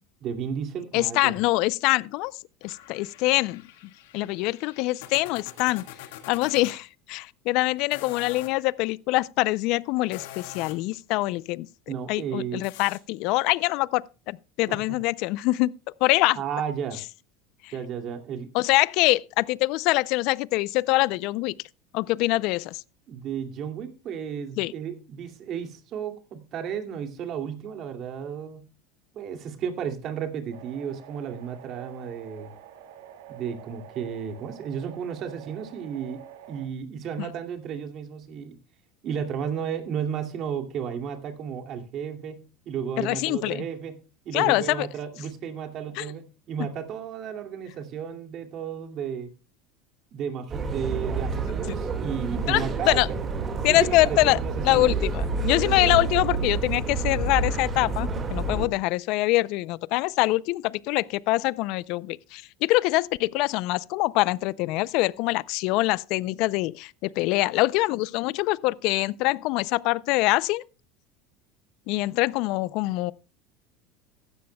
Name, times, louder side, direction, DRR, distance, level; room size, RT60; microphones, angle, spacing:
voice 1, 0.2-1.4 11.9-12.7 14.7-15.0 16.4-17.0 17.7-18.5 23.1-28.7 29.1-32.5 33.3-38.6 39.0-44.0 44.3-49.3 50.1-53.0 53.7-54.9, right 7 dB, 40° right, 2.4 m, -33 dB
voice 2, 0.9-2.3 2.6-3.6 4.1-5.8 6.3-11.7 12.1-15.7 16.0-16.4 17.6-17.7 18.5-21.5 21.9-22.8 24.6-24.7 37.2-37.3 43.0-43.6 44.3-44.9 46.0-46.1 51.7-51.8 52.5-53.1 53.6-54.4 54.6-70.6 71.9-73.1, left 20 dB, 60° left, 0.4 m, -24 dB
sound 1, 2.6-6.8 7.8-8.5 10.0-10.9 12.6-13.0, left 12 dB, 80° left, 1.7 m, -44 dB
sound 2, 30.5-36.7, right 10 dB, 85° right, 2.0 m, -47 dB
sound 3, 50.5-58.7, right 4 dB, 25° right, 1.9 m, -28 dB
15.5 x 12.5 x 2.2 m
supercardioid pair, 135°, 0 cm